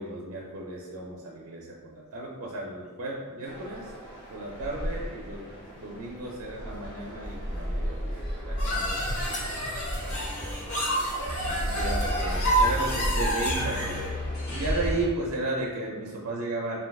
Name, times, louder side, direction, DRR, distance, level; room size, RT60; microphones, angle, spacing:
voice 1, 0.0-3.9 4.3-9.9 11.4-14.0 14.5-16.8, right 2 dB, 70° right, -3 dB, 0.4 m, -35 dB
sound 1, 3.4-15.0, equal, 45° left, 0.8 m, -33 dB
sound 2, 8.6-14.1, right 1 dB, 75° left, 1.0 m, -29 dB
3.4 x 2.6 x 2.2 m, 1.5 s
head